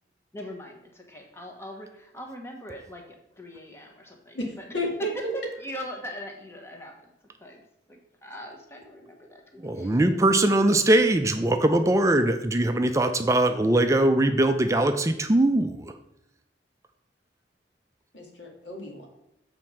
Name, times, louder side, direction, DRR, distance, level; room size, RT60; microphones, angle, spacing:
voice 1, 0.3-4.7 5.1-6.9 7.4-7.6 7.9-10.0, equal, 15° left, 1 dB, 1.2 m, -41 dB
voice 2, 4.3-5.3 18.1-19.1, equal, 85° left, 1 dB, 2.0 m, -32 dB
voice 3, 9.6-15.8, right 1 dB, 15° right, 7 dB, 0.4 m, -21 dB
7.6 x 4.3 x 6.2 m, 0.82 s
head